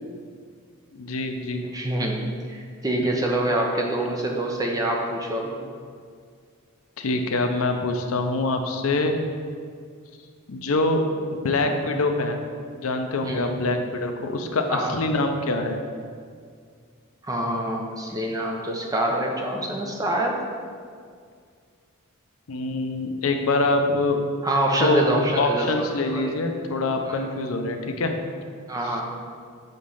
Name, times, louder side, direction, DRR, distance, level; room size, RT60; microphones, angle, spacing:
voice 1, 0.9-1.6 7.0-9.2 10.5-11.0 11.4-12.4 12.8-14.6 14.9-15.8 22.5-24.2 24.8-25.1 25.4-28.1, left 2 dB, 70° left, 5 dB, 0.6 m, -24 dB
voice 2, 1.7-5.6 13.2-13.5 14.7-14.9 17.2-20.4 24.4-25.9 26.1-26.2 27.1-27.2 28.7-29.0, right 1 dB, 15° right, 0 dB, 0.6 m, -25 dB
6.6 x 3.1 x 5.4 m, 2.1 s
head